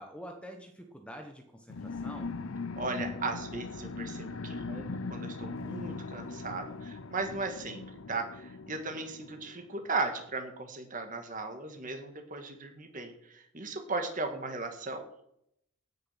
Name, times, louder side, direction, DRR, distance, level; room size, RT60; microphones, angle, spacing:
voice 1, 0.0-2.3, equal, 5° left, 4 dB, 1.1 m, -46 dB
sound 1, 1.7-9.8, left 3 dB, 65° left, 0.6 m, -40 dB
voice 2, 2.8-7.8 8.1-15.0, right 3 dB, 35° right, 4 dB, 2.0 m, -37 dB
16.5 x 6.6 x 5.9 m, 0.76 s
head